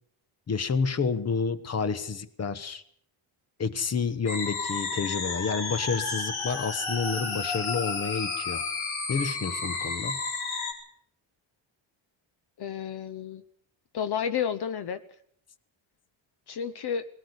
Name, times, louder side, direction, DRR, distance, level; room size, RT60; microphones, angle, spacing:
voice 1, 0.5-2.8 3.6-8.6 9.1-10.2, left 5 dB, 30° left, 14 dB, 1.2 m, -29 dB
sound 1, 4.3-10.7, left 4 dB, 75° left, 4.5 m, -32 dB
voice 2, 12.6-13.4 13.9-15.0 16.5-17.1, left 8 dB, 50° left, 12 dB, 0.9 m, -31 dB
20.5 x 17.5 x 8.2 m, 0.64 s
cardioid pair, 145°, 48 cm